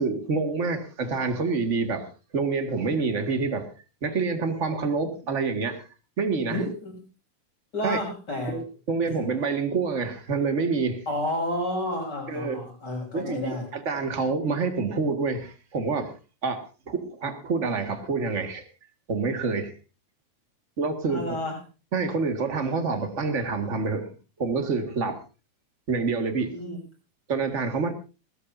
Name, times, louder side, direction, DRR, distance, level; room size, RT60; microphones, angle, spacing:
voice 1, 0.0-2.1 2.3-3.7 4.0-5.8 6.2-6.6 7.8-8.0 8.5-11.0 12.3-12.6 13.1-16.1 16.4-18.7 19.1-19.7 20.8-21.2 21.9-24.1 24.4-25.2 25.9-26.6 27.3-27.9, right 4 dB, 30° right, 7 dB, 1.7 m, -27 dB
voice 2, 6.5-6.9 7.7-8.6 9.1-9.2 11.1-13.7 21.1-21.6 26.5-26.8, left 1 dB, 35° left, 2 dB, 6.8 m, -30 dB
19.5 x 17.0 x 2.7 m, 0.31 s
omnidirectional pair, 3.3 m